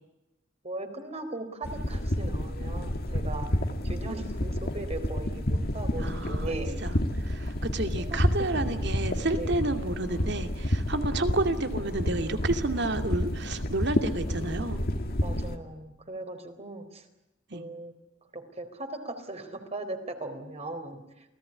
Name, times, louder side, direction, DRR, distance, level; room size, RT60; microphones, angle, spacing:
voice 1, 0.6-3.5 3.8-6.8 8.0-8.2 8.5-8.7 8.9-9.6 15.2-17.1 17.5-17.9 18.3-21.0, right 2 dB, 35° right, 7 dB, 4.1 m, -38 dB
sound 1, 1.6-15.6, equal, 55° left, 2.3 m, -30 dB
voice 2, 6.0-6.5 6.8-7.0 7.2-14.8 17.5-17.6, right 2 dB, 65° right, 7 dB, 2.5 m, -30 dB
28.5 x 18.5 x 9.9 m, 0.92 s
head